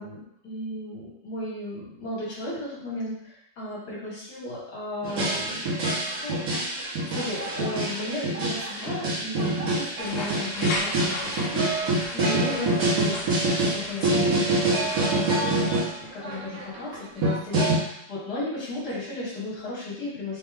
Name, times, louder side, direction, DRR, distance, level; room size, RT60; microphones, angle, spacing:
voice 1, 0.0-6.4 7.0-20.4, left 1 dB, 55° left, -7 dB, 2.2 m, -35 dB
sound 1, 5.0-15.9 16.2-17.8, right 2 dB, 55° right, 1.4 m, -26 dB
sound 2, 10.0-15.8, left 2 dB, 80° left, 1.6 m, -36 dB
4.2 x 2.9 x 3.5 m, 0.75 s
omnidirectional pair, 2.1 m